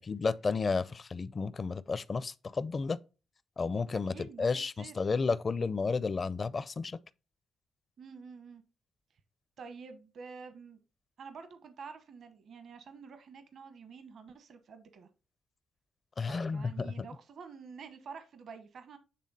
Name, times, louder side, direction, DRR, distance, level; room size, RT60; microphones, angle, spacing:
voice 1, 0.1-3.0 3.6-7.0 16.2-17.1, left 4 dB, 40° left, 0.5 m, -32 dB
voice 2, 4.1-5.0 8.0-8.6 9.6-10.8 11.2-15.1 16.3-19.0, right 5 dB, 65° right, 1.0 m, -48 dB
8.5 x 3.4 x 4.1 m
cardioid pair, 70°, 0 cm